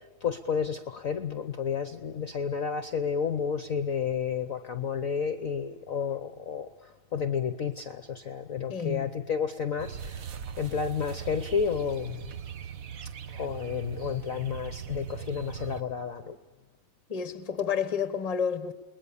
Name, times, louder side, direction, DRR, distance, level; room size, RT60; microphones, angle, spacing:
voice 1, 0.2-12.2 13.3-16.4, left 6 dB, 50° left, 1.1 m, -31 dB
voice 2, 8.7-9.2 17.1-18.7, left 7 dB, 25° left, 1.0 m, -30 dB
sound 1, 9.8-15.8, right 8 dB, 50° right, 1.2 m, -40 dB
29.5 x 20.5 x 7.0 m
omnidirectional pair, 2.3 m